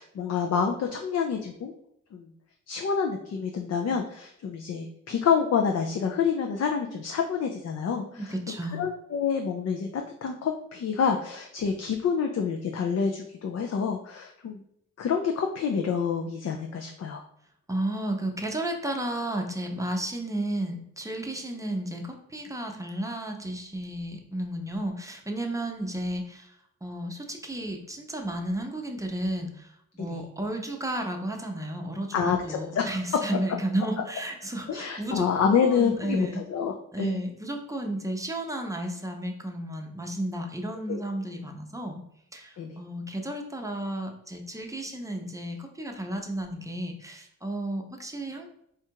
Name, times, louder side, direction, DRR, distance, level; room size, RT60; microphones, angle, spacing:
voice 1, 0.0-1.7 2.1-2.3 2.7-8.3 8.7-14.6 15.0-17.2 30.0-30.2 32.1-33.0 34.7-37.2 40.9-41.0 42.6-42.8, left 6 dB, 55° left, 3 dB, 0.5 m, -28 dB
voice 2, 8.1-8.9 17.7-26.5 26.8-36.4 36.9-42.0 42.3-48.5, right 1 dB, 10° right, 3 dB, 0.6 m, -33 dB
4.4 x 2.4 x 4.5 m, 0.75 s
wide cardioid pair, 125°, 31 cm